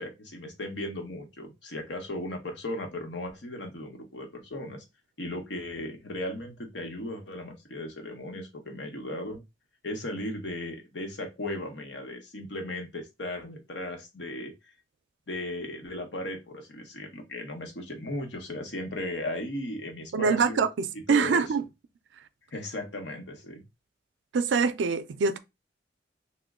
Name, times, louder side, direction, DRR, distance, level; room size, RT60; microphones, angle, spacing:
voice 1, 0.0-4.8 5.2-9.4 9.8-14.5 15.3-20.6 21.1-21.5 22.5-23.7, left 1 dB, 85° left, 0.9 m, -36 dB
voice 2, 20.1-21.6 24.3-25.4, right 5 dB, 90° right, 0.4 m, -24 dB
3.0 x 2.1 x 3.5 m
head